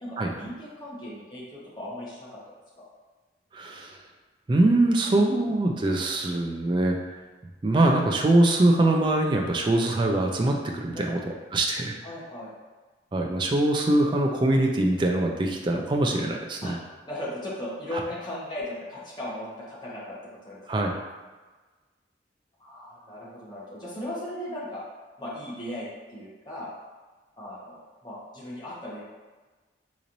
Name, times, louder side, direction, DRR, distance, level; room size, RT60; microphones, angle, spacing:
voice 1, 0.0-2.3 2.8-2.9 10.9-11.3 12.0-12.5 16.6-16.8 17.0-20.2 20.4-20.6 22.6-24.8 25.2-26.7 27.4-29.0, left 1 dB, 25° left, -8 dB, 1.0 m, -37 dB
voice 2, 3.5-4.0 4.5-7.0 7.6-11.2 11.5-12.0 13.1-16.8 20.7-20.9, right 2 dB, 25° right, 1 dB, 0.3 m, -23 dB
4.0 x 3.0 x 2.6 m, 1.3 s
head